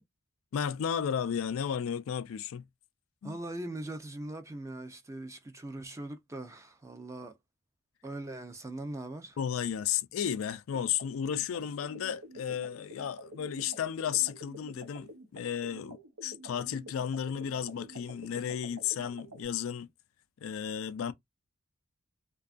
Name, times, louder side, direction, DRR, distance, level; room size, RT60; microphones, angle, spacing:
voice 1, 0.5-2.7 3.2-3.4 9.4-16.0 16.2-19.9 20.4-21.1, left 8 dB, 75° left, 0.4 m, -33 dB
voice 2, 3.2-7.4 8.0-9.4, right 1 dB, 15° right, 0.4 m, -41 dB
sound 1, 10.7-19.4, right 1 dB, 90° right, 0.7 m, -49 dB
2.6 x 2.3 x 2.4 m
head